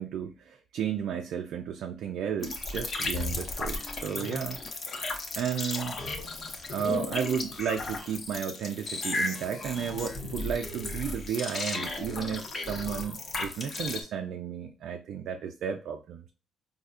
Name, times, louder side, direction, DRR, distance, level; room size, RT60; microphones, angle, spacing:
voice 1, 0.0-4.6 5.4-6.0 6.7-16.3, right 8 dB, 75° right, 0.4 m, -33 dB
sound 1, 2.4-14.0, left 3 dB, 50° left, 0.9 m, -35 dB
4.2 x 2.7 x 2.4 m
cardioid pair, 90°, 0 cm